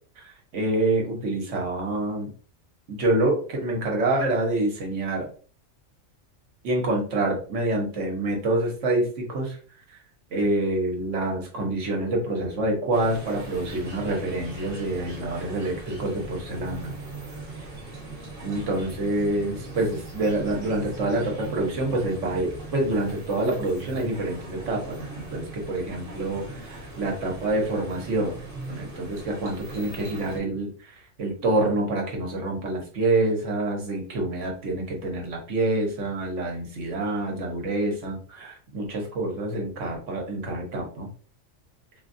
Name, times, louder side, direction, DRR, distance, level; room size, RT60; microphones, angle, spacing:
voice 1, 0.2-2.3 2.9-5.3 6.6-9.6 10.3-16.9 18.4-28.4 28.7-30.7 31.2-41.1, right 2 dB, 65° right, 0 dB, 1.3 m, -27 dB
sound 1, 12.9-30.4, right 2 dB, 45° right, 1.2 m, -39 dB
4.0 x 2.2 x 2.6 m, 0.41 s
omnidirectional pair, 1.4 m